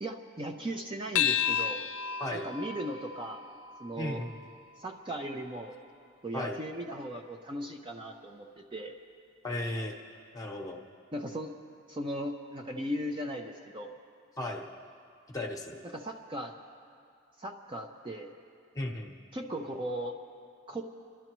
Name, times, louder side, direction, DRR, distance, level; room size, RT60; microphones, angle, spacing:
voice 1, 0.0-1.8 2.3-3.4 3.8-4.2 4.8-5.8 6.2-8.9 11.1-11.5 11.9-13.9 15.8-16.5 17.4-18.3 19.3-20.2 20.7-20.8, equal, 25° right, 3 dB, 0.5 m, -37 dB
sound 1, 1.1-5.9, left 9 dB, 75° left, 0.5 m, -34 dB
voice 2, 4.0-4.3 6.3-6.6 9.4-10.0 10.3-10.8 14.4-14.7 15.3-15.8 18.7-19.1, left 1 dB, 15° left, 1 dB, 1.0 m, -35 dB
29.5 x 12.5 x 3.0 m, 2.4 s
head